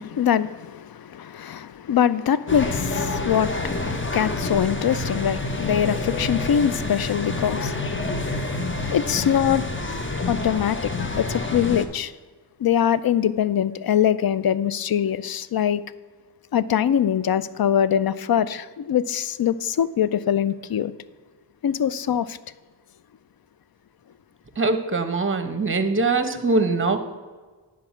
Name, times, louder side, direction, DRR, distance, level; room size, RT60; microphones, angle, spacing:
voice 1, 0.0-8.4 8.9-9.6 10.3-10.9 11.2-12.1 12.6-15.8 16.5-20.9 21.6-22.4, left 9 dB, 60° left, 0.5 m, -23 dB
sound 1, 2.5-11.9, left 2 dB, 30° left, 0.9 m, -28 dB
voice 2, 24.6-27.0, right 3 dB, 30° right, 1.0 m, -22 dB
9.9 x 4.8 x 7.1 m
wide cardioid pair, 70°, 42 cm